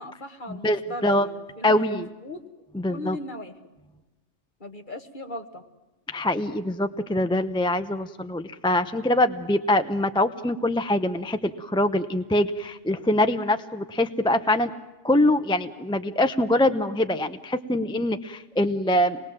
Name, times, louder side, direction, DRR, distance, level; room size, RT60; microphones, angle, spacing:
voice 1, 0.0-2.4 2.9-3.5 4.6-5.6, left 1 dB, 40° left, 5 dB, 1.9 m, -38 dB
voice 2, 0.6-1.3 1.6-2.1 2.8-3.2 6.1-14.7 15.0-19.2, left 1 dB, 5° left, 9 dB, 0.6 m, -24 dB
26.0 x 20.5 x 7.5 m, 1.1 s
omnidirectional pair, 1.2 m